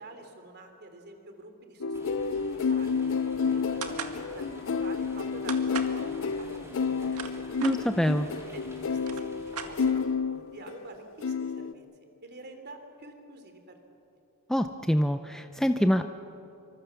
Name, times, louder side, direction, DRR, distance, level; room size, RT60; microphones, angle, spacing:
voice 1, 0.0-3.1 3.4-7.5 8.2-11.8 12.2-13.8, right 2 dB, 50° right, 6 dB, 3.2 m, -47 dB
sound 1, 1.8-10.9 11.2-11.7, left 5 dB, 60° left, 0.5 m, -30 dB
sound 2, 1.9-9.9, equal, 15° right, 3.8 m, -49 dB
sound 3, 3.8-4.2 5.5-6.0 6.9-7.8 8.6-8.7 8.9-10.1, right 6 dB, 80° right, 1.9 m, -37 dB
voice 2, 7.6-8.3 14.5-16.1, equal, ahead, 7 dB, 0.5 m, -25 dB
27.0 x 24.5 x 7.0 m, 2.9 s
head